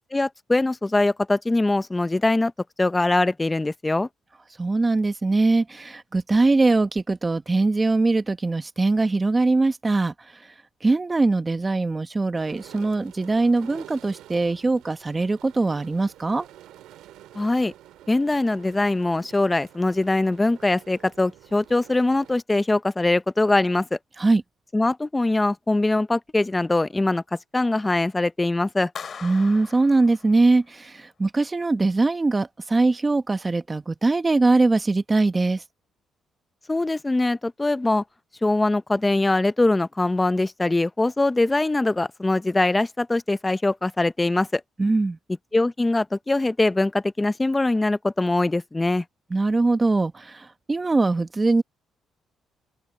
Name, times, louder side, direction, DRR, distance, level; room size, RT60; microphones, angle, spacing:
voice 1, 0.1-2.5 2.8-4.1 17.3-17.7 18.1-24.0 24.7-28.9 36.7-38.0 38.4-44.6 45.5-49.0, left 2 dB, 15° left, 0.7 m, -22 dB
voice 2, 4.6-10.5 10.8-16.5 24.2-24.4 29.2-35.6 44.8-45.2 49.3-51.6, right 3 dB, 25° right, 1.4 m, -22 dB
sound 1, 12.3-22.4, right 13 dB, 90° right, 2.1 m, -48 dB
Clapping, 29.0-30.8, left 6 dB, 50° left, 4.1 m, -40 dB
open air
cardioid pair, 90°, 0 cm